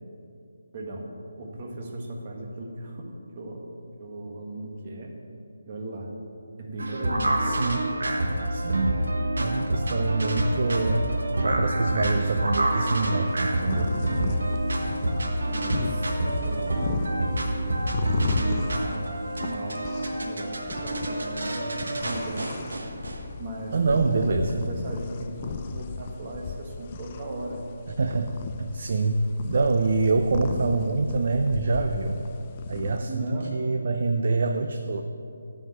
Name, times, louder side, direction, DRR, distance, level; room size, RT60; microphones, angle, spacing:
voice 1, 0.7-1.1 1.3-5.1 5.7-6.1 6.6-7.5 14.1-14.4 15.5-17.8 18.2-19.1 19.4-19.8 20.2-22.6 23.4-27.6 33.0-33.6, right 1 dB, 35° right, 0 dB, 1.4 m, -37 dB
sound 1, 6.8-23.2, right 1 dB, 75° right, 1.2 m, -27 dB
voice 2, 7.4-7.9 8.5-9.0 9.4-11.1 11.4-14.0 23.7-24.6 28.0-32.2 32.7-35.0, right 3 dB, 55° right, 6 dB, 0.5 m, -25 dB
sound 2, 13.3-33.0, left 5 dB, 30° left, 0.4 m, -36 dB
8.9 x 4.6 x 7.2 m, 2.6 s
figure-of-eight pair, 155°, 0 cm